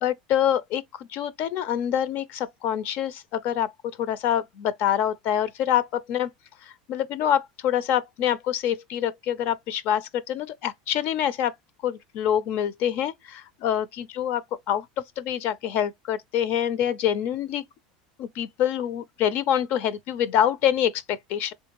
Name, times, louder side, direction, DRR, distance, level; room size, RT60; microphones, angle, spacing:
voice 1, 0.0-6.3 6.6-11.5 11.8-17.6 18.2-21.5, left 10 dB, 55° left, 0.4 m, -26 dB
3.5 x 2.3 x 2.9 m
hypercardioid pair, 95°, 4 cm